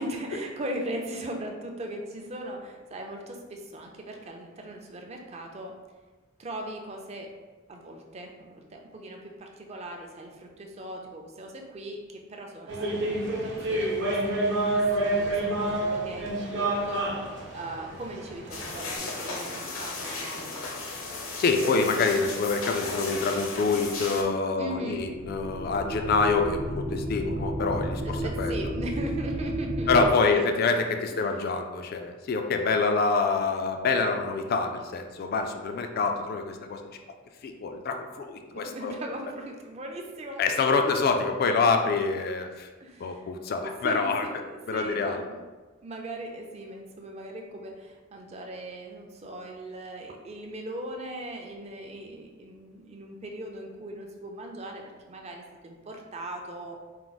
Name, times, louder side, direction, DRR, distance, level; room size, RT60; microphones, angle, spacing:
voice 1, 0.0-5.7 6.4-7.3 7.7-20.5 24.6-25.1 28.0-29.9 30.2-30.5 31.1-31.3 38.4-40.9 42.8-45.4 45.8-56.8, right 1 dB, 30° right, 2 dB, 0.5 m, -39 dB
sound 1, 12.7-19.0, right 1 dB, 60° right, 0.8 m, -28 dB
sound 2, 18.5-24.2, left 3 dB, 70° left, 0.7 m, -35 dB
voice 2, 21.4-28.5 29.9-36.8 37.4-38.9 40.4-42.7 43.0-44.3 44.7-45.2, left 4 dB, 45° left, 5 dB, 0.3 m, -26 dB
sound 3, 24.7-30.1, right 1 dB, 85° right, 1.0 m, -32 dB
4.5 x 2.0 x 3.9 m, 1.3 s
head